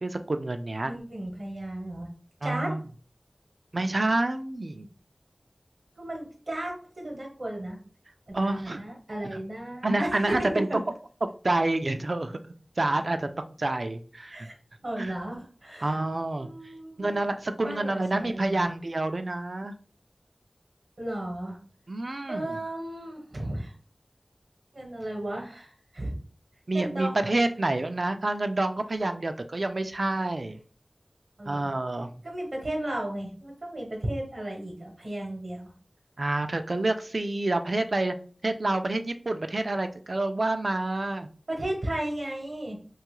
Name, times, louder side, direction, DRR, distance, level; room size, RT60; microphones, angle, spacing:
voice 1, 0.0-0.9 2.4-2.8 3.7-4.9 8.3-8.8 9.3-9.4 9.8-10.8 11.4-12.4 12.8-13.3 13.6-14.5 15.0-15.1 15.8-16.5 17.0-19.7 21.9-22.6 26.7-30.6 31.5-32.1 36.2-38.1 38.4-41.3, right 2 dB, 70° right, 8 dB, 0.3 m, -28 dB
voice 2, 0.9-2.1 2.4-2.7 6.0-7.8 8.3-10.6 14.3-14.5 14.8-16.0 16.4-17.1 17.6-18.7 21.0-21.6 22.3-23.7 24.7-26.2 26.7-27.2 31.4-31.7 32.2-35.7 41.5-42.8, right 1 dB, 90° right, -1 dB, 0.8 m, -34 dB
2.9 x 2.3 x 3.0 m, 0.42 s
wide cardioid pair, 40°, 0 cm